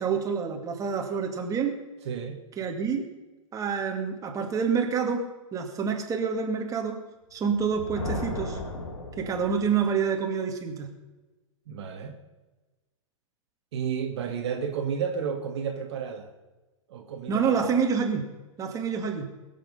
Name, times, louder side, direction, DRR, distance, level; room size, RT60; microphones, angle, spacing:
voice 1, 0.0-1.7 2.6-3.1 3.5-7.0 7.3-8.6 9.2-10.9 17.3-18.3 18.6-19.3, right 6 dB, 20° right, 3 dB, 2.4 m, -27 dB
voice 2, 2.1-2.4 11.7-12.2 13.7-16.3 16.9-17.7, right 7 dB, 55° right, 4 dB, 1.9 m, -32 dB
Thunder, 7.3-10.0, left 2 dB, 70° left, 4.9 m, -36 dB
22.0 x 7.8 x 5.6 m, 1.1 s
figure-of-eight pair, 105°, 17 cm